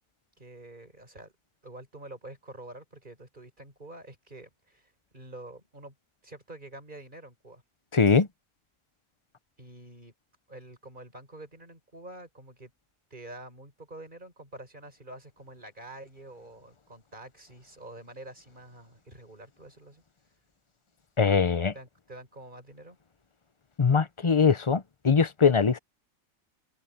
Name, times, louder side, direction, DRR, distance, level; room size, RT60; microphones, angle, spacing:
voice 1, 0.4-1.3 1.6-5.9 6.2-7.6 9.6-10.1 10.5-12.7 13.1-20.0 21.7-23.0, right 1 dB, 35° right, 5.7 m, -47 dB
voice 2, 7.9-8.3 21.2-21.7 23.8-25.8, left 5 dB, 30° left, 0.6 m, -22 dB
open air
omnidirectional pair, 1.4 m